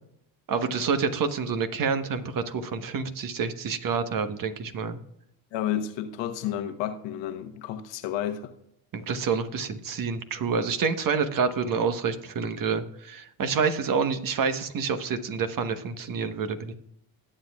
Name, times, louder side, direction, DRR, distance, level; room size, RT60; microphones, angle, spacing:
voice 1, 0.5-5.0 8.9-16.7, right 5 dB, 45° right, 1.2 m, -28 dB
voice 2, 5.5-8.5, left 10 dB, 70° left, 1.2 m, -31 dB
19.5 x 7.7 x 2.4 m
supercardioid pair, 75°, 46 cm